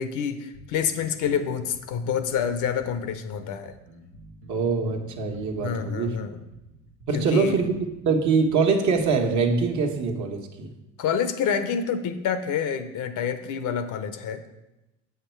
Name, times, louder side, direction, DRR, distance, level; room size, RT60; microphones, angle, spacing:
voice 1, 0.0-3.7 5.6-6.4 7.1-7.6 11.0-14.4, left 7 dB, 55° left, 10 dB, 0.8 m, -27 dB
sound 1, 0.5-10.1, equal, 80° right, 1.4 m, -49 dB
voice 2, 4.5-6.2 7.1-10.7, right 4 dB, 50° right, 3 dB, 1.3 m, -24 dB
7.8 x 5.8 x 4.5 m, 0.97 s
supercardioid pair, 85°, 37 cm